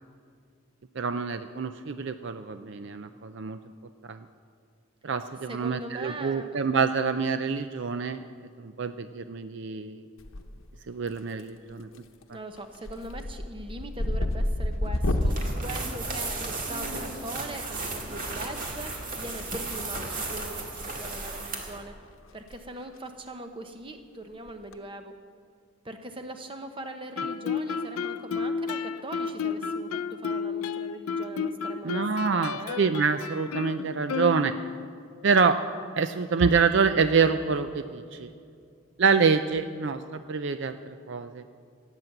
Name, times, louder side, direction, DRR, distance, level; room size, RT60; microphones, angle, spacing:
voice 1, 1.0-3.6 4.1-4.2 5.0-8.2 8.6-10.0 10.9-12.0 31.8-34.5 35.2-35.6 36.0-38.3 39.0-40.8 41.1-41.4, right 5 dB, 55° right, 10 dB, 0.4 m, -26 dB
voice 2, 5.5-6.6 12.3-21.9 22.3-25.1 25.8-32.8, right 1 dB, 25° right, 6 dB, 0.9 m, -41 dB
sound 1, 10.2-10.8 11.1-11.6 11.9-12.2 12.6-17.0 18.3-18.5 19.7-20.5 20.8-21.0 21.5-21.6 21.9-22.0 22.3-22.5 22.8-22.9 24.5-24.7, left 1 dB, 65° left, 0.9 m, -30 dB
sound 2, 15.2-21.8, right 3 dB, 40° right, 2.0 m, -35 dB
Guitar, 27.2-34.9, left 6 dB, 85° left, 0.5 m, -32 dB
16.5 x 9.0 x 7.9 m, 2.4 s
head